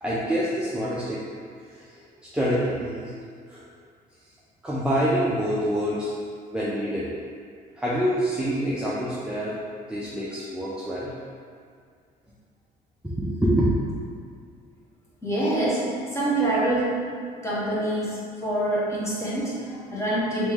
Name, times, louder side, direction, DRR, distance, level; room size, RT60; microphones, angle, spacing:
voice 1, 0.0-1.2 1.7-2.0 2.3-3.1 3.5-3.7 4.6-6.1 6.5-7.1 7.8-9.6 9.9-11.1 13.0-13.7, equal, 5° right, -8 dB, 0.5 m, -26 dB
voice 2, 15.2-15.8 16.1-17.1 17.4-20.5, right 1 dB, 15° left, -8 dB, 1.2 m, -25 dB
3.1 x 3.1 x 3.5 m, 2.2 s
cardioid pair, 110°, 17 cm